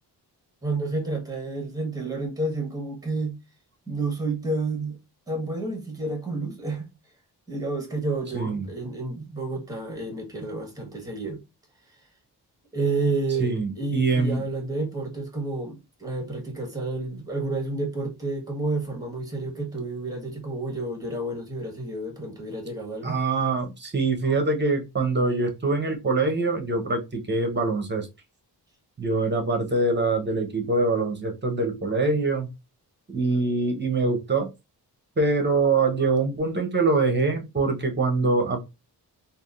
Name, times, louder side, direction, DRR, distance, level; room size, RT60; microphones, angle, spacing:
voice 1, 0.6-3.4 3.9-5.0 5.3-6.9 7.5-11.4 12.7-23.2, right 2 dB, 10° right, 1.3 m, -30 dB
voice 2, 8.3-8.6 13.4-14.4 23.0-28.1 29.0-32.5 33.1-34.5 35.2-38.6, right 3 dB, 25° right, 0.9 m, -24 dB
3.5 x 2.6 x 2.4 m
wide cardioid pair, 125°, 41 cm